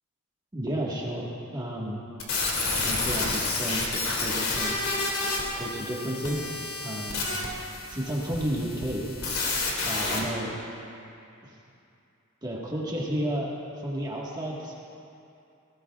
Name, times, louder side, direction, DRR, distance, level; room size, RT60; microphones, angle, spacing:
voice 1, 0.5-2.0 2.7-4.7 5.2-6.5 6.8-7.4 7.9-9.0 9.8-10.6 11.4-11.6 12.4-13.5 13.8-14.8, right 1 dB, 20° right, -4 dB, 1.6 m, -32 dB
sound 1, 2.2-10.2, left 3 dB, 85° left, 2.5 m, -30 dB
19.5 x 17.5 x 2.4 m, 2.7 s
head